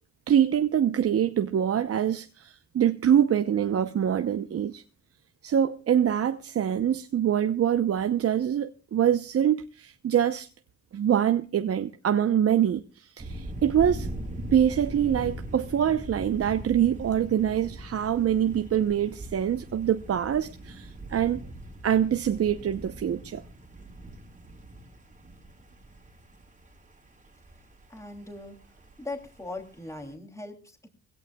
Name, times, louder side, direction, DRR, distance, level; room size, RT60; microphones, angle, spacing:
voice 1, 0.3-4.8 5.4-10.5 10.9-14.1 14.5-21.4 21.8-23.4, right 9 dB, 50° right, 0.8 m, -25 dB
sound 1, 13.2-30.1, right 1 dB, 25° right, 2.8 m, -41 dB
voice 2, 27.9-28.6 29.0-30.9, left 2 dB, 10° left, 2.9 m, -39 dB
22.0 x 16.5 x 2.3 m
cardioid pair, 70°, 30 cm